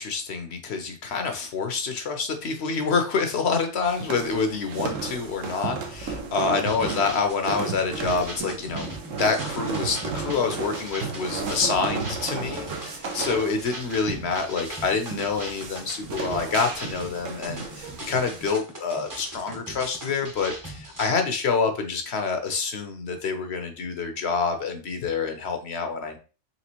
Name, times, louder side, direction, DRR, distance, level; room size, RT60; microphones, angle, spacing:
voice 1, 0.0-26.2, left 4 dB, 60° left, 6 dB, 0.9 m, -27 dB
sound 1, 3.9-18.6, right 5 dB, 85° right, 1.1 m, -34 dB
sound 2, 6.6-21.1, right 1 dB, 20° right, 0.7 m, -40 dB
4.2 x 3.2 x 2.9 m, 0.34 s
omnidirectional pair, 1.3 m